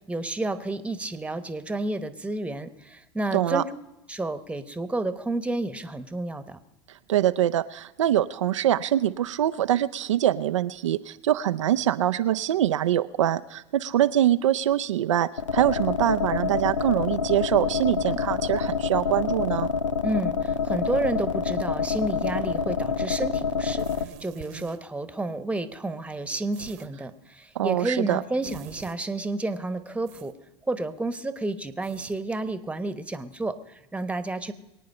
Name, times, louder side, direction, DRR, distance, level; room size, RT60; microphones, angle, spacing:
voice 1, 0.1-3.7 4.1-6.6 20.0-30.3 30.7-34.5, right 2 dB, 10° right, 12 dB, 1.1 m, -30 dB
voice 2, 3.3-3.6 7.1-19.7 27.6-28.2, right 12 dB, 80° right, 10 dB, 0.5 m, -24 dB
sound 1, 15.4-24.0, left 6 dB, 90° left, 0.6 m, -27 dB
sound 2, 23.8-24.8 26.5-26.9 28.4-29.0 30.1-30.3 31.8-32.2, right 12 dB, 55° right, 1.0 m, -44 dB
23.0 x 9.3 x 5.6 m, 0.95 s
hypercardioid pair, 80°, 16 cm